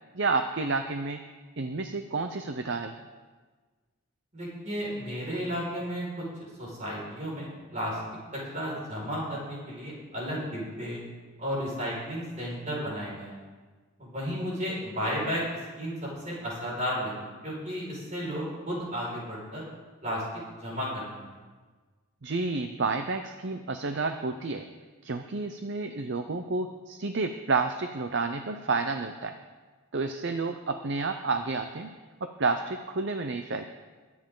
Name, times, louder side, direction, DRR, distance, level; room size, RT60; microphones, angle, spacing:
voice 1, 0.1-1.2 1.6-2.9 22.2-24.7 25.0-29.4 29.9-31.9 32.2-33.6, right 3 dB, 50° right, 7 dB, 0.6 m, -30 dB
voice 2, 4.3-8.0 8.3-11.0 11.4-13.4 14.0-15.4 15.8-19.6 20.0-20.2 20.6-21.3, equal, 35° right, -5 dB, 5.4 m, -33 dB
22.5 x 9.6 x 3.9 m, 1.4 s
head